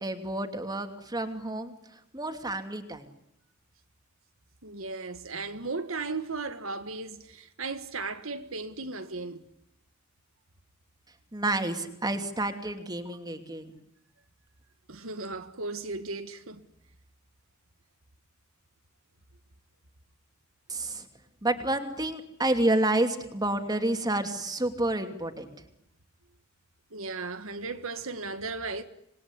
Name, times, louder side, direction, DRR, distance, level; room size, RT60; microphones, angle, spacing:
voice 1, 0.0-3.1 11.3-13.7 20.7-21.1 21.4-25.5, right 2 dB, 20° right, 2.8 m, -29 dB
voice 2, 4.6-9.5 14.9-16.6 26.9-28.8, right 3 dB, 80° right, 1.7 m, -36 dB
27.0 x 21.0 x 9.9 m
head